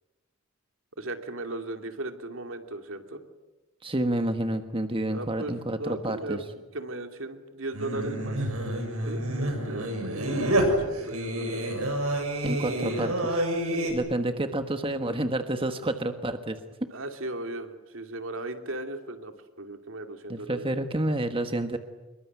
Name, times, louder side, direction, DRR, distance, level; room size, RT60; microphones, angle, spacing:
voice 1, 1.0-3.2 5.1-6.4 6.7-8.5 9.1-11.6 13.7-14.0 16.9-20.8, right 2 dB, 65° right, 6 dB, 2.7 m, -37 dB
voice 2, 3.8-6.4 12.4-13.4 13.9-16.6 20.3-21.8, right 1 dB, 25° right, 7 dB, 1.4 m, -29 dB
Singing, 7.7-13.9, right 1 dB, 85° right, 7.3 m, -28 dB
26.5 x 23.0 x 9.5 m, 1.1 s
head